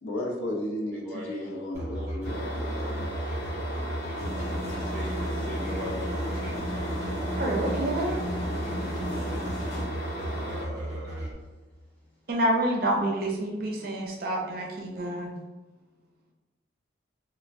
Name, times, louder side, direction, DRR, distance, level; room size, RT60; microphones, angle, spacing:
voice 1, 0.0-3.2, left 1 dB, 90° left, 0 dB, 0.6 m, -34 dB
voice 2, 1.0-1.7 4.7-6.4 10.0-11.1, equal, 10° left, -6 dB, 0.6 m, -41 dB
Musical instrument, 1.7-11.3, right 1 dB, 15° right, 1.2 m, -34 dB
sound 1, 2.2-10.6, equal, 60° left, 1.0 m, -37 dB
sound 2, 4.1-9.8, left 1 dB, 35° left, 0.8 m, -36 dB
voice 3, 7.4-8.2 12.3-15.4, right 1 dB, 50° right, -1 dB, 0.5 m, -28 dB
3.2 x 2.1 x 2.5 m, 1.2 s
head